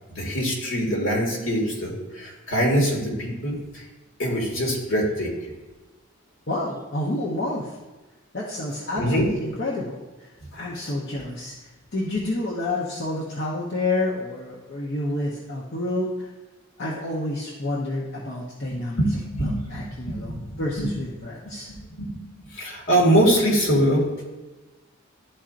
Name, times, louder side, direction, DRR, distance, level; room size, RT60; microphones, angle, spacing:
voice 1, 0.1-3.5 4.2-5.3 8.9-9.3 19.0-20.4 20.8-20.9 21.9-22.2 22.5-24.0, equal, 70° left, -2 dB, 1.8 m, -23 dB
voice 2, 6.5-7.8 8.3-11.5 11.9-16.3 16.8-19.0 19.4-21.7, left 2 dB, 55° left, -5 dB, 0.9 m, -29 dB
11.5 x 4.4 x 2.5 m, 1.2 s
head